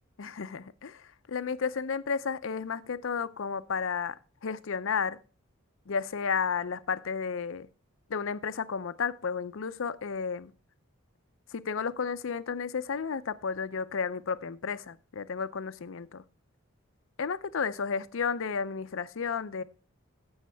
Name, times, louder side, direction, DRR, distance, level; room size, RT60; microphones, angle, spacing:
voice 1, 0.2-5.2 5.9-7.7 8.1-10.5 11.5-16.2 17.2-19.6, left 6 dB, 65° left, 0.5 m, -32 dB
15.0 x 6.4 x 3.4 m
head